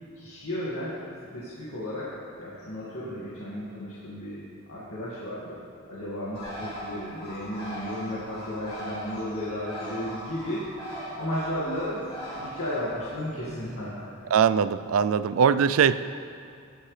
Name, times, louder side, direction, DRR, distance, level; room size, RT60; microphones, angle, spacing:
voice 1, 0.1-1.0 1.3-2.1 2.4-4.4 4.7-5.6 5.9-10.7 11.2-14.1, equal, 85° left, -9 dB, 2.0 m, -34 dB
Bird, 6.3-13.8, equal, 25° left, 2.6 m, -40 dB
voice 2, 14.3-16.2, right 7 dB, 75° right, 13 dB, 0.4 m, -22 dB
17.0 x 10.5 x 3.3 m, 2.4 s
head